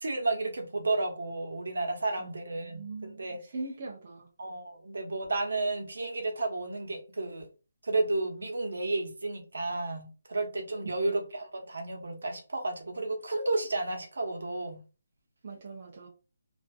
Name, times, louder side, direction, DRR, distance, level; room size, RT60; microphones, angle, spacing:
voice 1, 0.0-3.4 4.4-7.5 7.8-14.8, right 2 dB, 75° right, 0.9 m, -32 dB
voice 2, 2.6-3.2 3.5-4.3 11.0-11.1 15.4-16.1, right 3 dB, 30° right, 0.5 m, -41 dB
2.5 x 2.4 x 2.3 m
hypercardioid pair, 180°, 0 cm